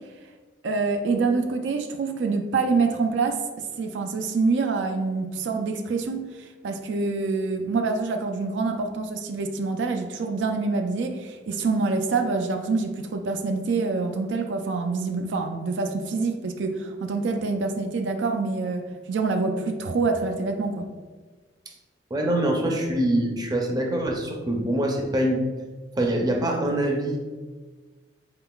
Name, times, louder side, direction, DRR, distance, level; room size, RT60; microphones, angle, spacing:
voice 1, 0.6-3.4 3.8-6.3 6.6-20.9, right 4 dB, 85° right, 5 dB, 0.4 m, -26 dB
voice 2, 22.1-25.4 26.0-27.2, right 1 dB, 25° right, 1 dB, 0.5 m, -24 dB
4.0 x 3.7 x 2.3 m, 1.3 s
head